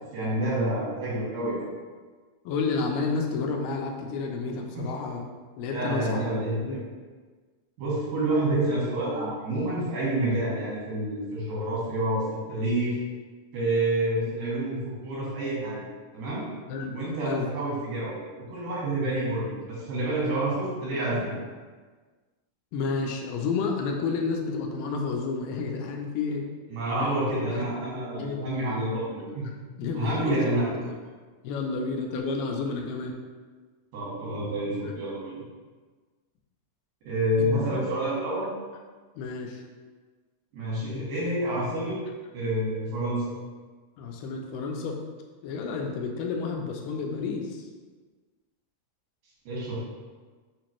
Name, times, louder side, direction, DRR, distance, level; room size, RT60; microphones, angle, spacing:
voice 1, 0.1-1.7 4.7-4.9 5.7-6.8 7.8-13.0 13.5-15.8 16.1-16.4 16.9-18.2 18.5-21.3 26.7-29.5 29.9-30.8 33.9-35.4 37.0-38.5 40.5-42.0 42.3-43.2 49.5-49.8, right 1 dB, 90° right, -7 dB, 3.3 m, -28 dB
voice 2, 2.5-5.2 5.6-6.2 6.6-6.8 16.7-17.5 22.7-26.5 27.0-27.1 27.5-27.6 28.1-28.4 29.8-30.6 31.4-33.2 37.4-37.8 39.2-39.6 44.0-45.0 45.4-47.6, left 4 dB, 85° left, 2 dB, 2.2 m, -30 dB
6.7 x 2.5 x 3.0 m, 1.4 s
omnidirectional pair, 3.9 m